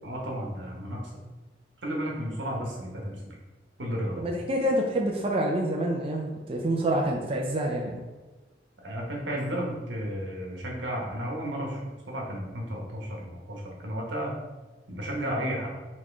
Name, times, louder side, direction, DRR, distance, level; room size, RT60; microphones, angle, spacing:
voice 1, 0.0-1.1 1.8-3.2 3.8-4.2 8.8-14.4 14.9-15.7, equal, 85° right, -2 dB, 1.1 m, -33 dB
voice 2, 4.2-8.0, right 1 dB, 30° right, 0 dB, 0.4 m, -27 dB
4.2 x 3.1 x 3.4 m, 1.2 s
head